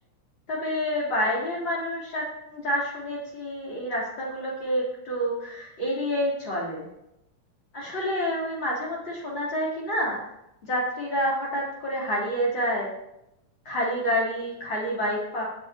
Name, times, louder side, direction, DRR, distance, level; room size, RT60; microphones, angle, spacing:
voice 1, 0.5-6.9 7.7-10.2 10.6-12.9 13.7-15.4, equal, 35° left, -6 dB, 4.3 m, -28 dB
20.0 x 7.2 x 3.0 m, 0.85 s
omnidirectional pair, 3.7 m